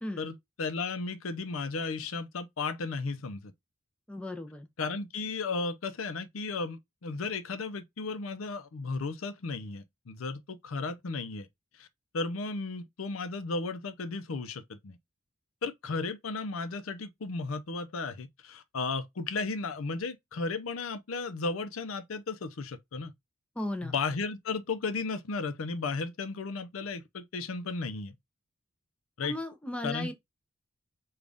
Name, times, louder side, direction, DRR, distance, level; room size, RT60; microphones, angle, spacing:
voice 1, 0.2-3.5 4.8-11.5 11.8-11.9 12.1-15.0 15.6-23.1 23.8-28.1 29.2-29.4 29.8-30.1, left 4 dB, 85° left, 0.6 m, -34 dB
voice 2, 4.1-4.7 23.6-23.9 29.2-30.1, left 1 dB, 5° left, 0.5 m, -36 dB
3.8 x 2.4 x 3.4 m
head